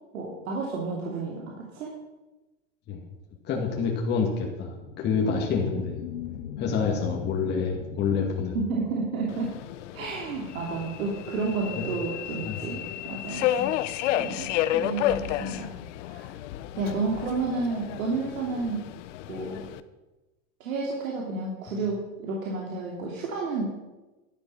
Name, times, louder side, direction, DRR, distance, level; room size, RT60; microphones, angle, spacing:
voice 1, 0.1-1.9 5.2-5.4 6.8-6.9 8.5-9.6 9.9-13.7 14.1-15.7 16.1-16.3 16.8-18.9 19.3-19.6 20.6-23.6, right 3 dB, 90° right, -2 dB, 3.0 m, -31 dB
voice 2, 3.5-6.0 6.6-8.6 12.4-12.6, left 5 dB, 25° left, -1 dB, 2.1 m, -27 dB
sound 1, 4.7-9.6, left 9 dB, 80° left, 1.6 m, -40 dB
Subway metro underground, 9.3-19.8, left 12 dB, 65° left, 0.9 m, -32 dB
12.5 x 11.5 x 5.5 m, 1.1 s
supercardioid pair, 150°, 40 cm